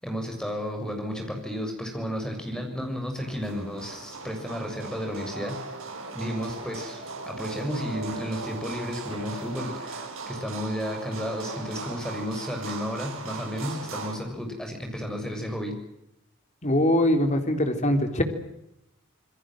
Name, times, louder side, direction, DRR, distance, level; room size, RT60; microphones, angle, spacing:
voice 1, 0.0-5.8 6.1-15.8, equal, 5° left, 3 dB, 7.1 m, -33 dB
sound 1, 3.1-14.2, right 3 dB, 70° right, 5.9 m, -38 dB
voice 2, 16.6-18.2, left 1 dB, 35° left, 6 dB, 3.7 m, -22 dB
27.5 x 22.0 x 7.7 m, 0.83 s
head